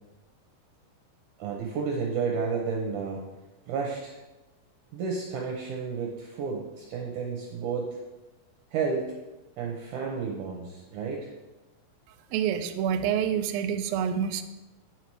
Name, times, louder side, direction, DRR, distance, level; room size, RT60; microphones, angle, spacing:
voice 1, 1.4-3.2 3.7-4.2 4.9-8.0 8.7-9.1 9.6-11.3, right 5 dB, 70° right, -1 dB, 2.1 m, -31 dB
voice 2, 12.3-14.4, right 8 dB, 90° right, 8 dB, 2.4 m, -27 dB
9.1 x 5.8 x 4.7 m, 1.1 s
omnidirectional pair, 4.1 m